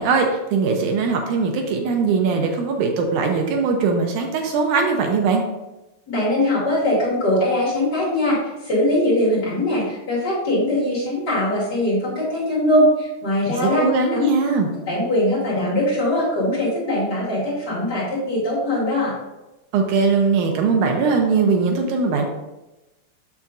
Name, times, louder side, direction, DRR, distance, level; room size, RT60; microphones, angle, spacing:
voice 1, 0.0-5.4 13.6-14.7 19.7-22.3, right 4 dB, 80° right, 3 dB, 2.1 m, -20 dB
voice 2, 6.1-14.3 14.9-19.1, left 1 dB, 35° left, -8 dB, 2.7 m, -21 dB
7.2 x 7.1 x 2.6 m, 1.0 s
omnidirectional pair, 3.7 m